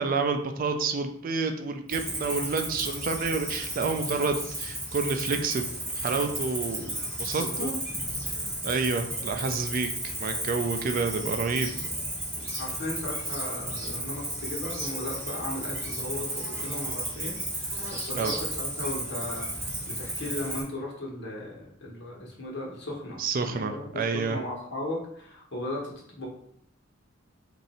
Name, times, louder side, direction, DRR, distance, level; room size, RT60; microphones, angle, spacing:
voice 1, 0.0-5.7 6.0-7.8 8.6-11.7 18.1-18.3 23.2-24.4, right 4 dB, 45° right, 6 dB, 0.4 m, -29 dB
Cricket, 1.9-20.6, right 1 dB, 15° right, 1.5 m, -34 dB
voice 2, 7.2-7.7 12.3-26.3, left 1 dB, 60° left, -3 dB, 1.1 m, -37 dB
3.0 x 2.6 x 4.1 m, 0.67 s
head